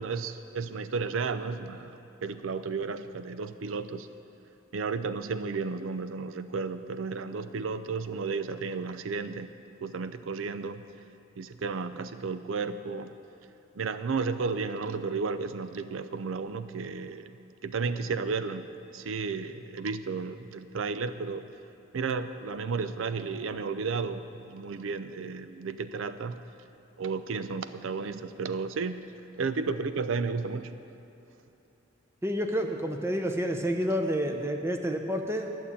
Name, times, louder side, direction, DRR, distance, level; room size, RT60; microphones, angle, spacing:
voice 1, 0.0-4.1 4.7-10.8 11.4-13.1 13.8-17.3 17.6-18.7 18.9-21.5 21.9-26.4 27.0-29.1 29.4-30.7, right 4 dB, 75° right, 11 dB, 0.5 m, -33 dB
voice 2, 32.2-35.5, equal, 15° right, 4 dB, 0.7 m, -29 dB
11.5 x 7.2 x 8.4 m, 3.0 s
head